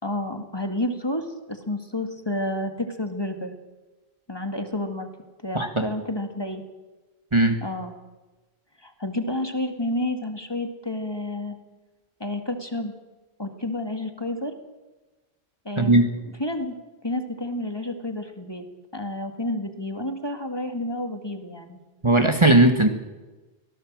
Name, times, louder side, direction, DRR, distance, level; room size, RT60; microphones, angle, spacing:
voice 1, 0.0-3.5 4.3-5.1 5.4-6.6 7.6-7.9 8.8-11.6 12.2-12.9 13.4-14.5 15.7-16.0 16.4-16.8 17.0-18.6 18.9-21.8, left 1 dB, 25° left, 6 dB, 2.1 m, -30 dB
voice 2, 5.5-5.9 7.3-7.6 15.8-16.1 22.0-22.9, right 2 dB, 30° right, 5 dB, 1.5 m, -18 dB
24.5 x 17.5 x 7.5 m, 1.2 s
omnidirectional pair, 1.1 m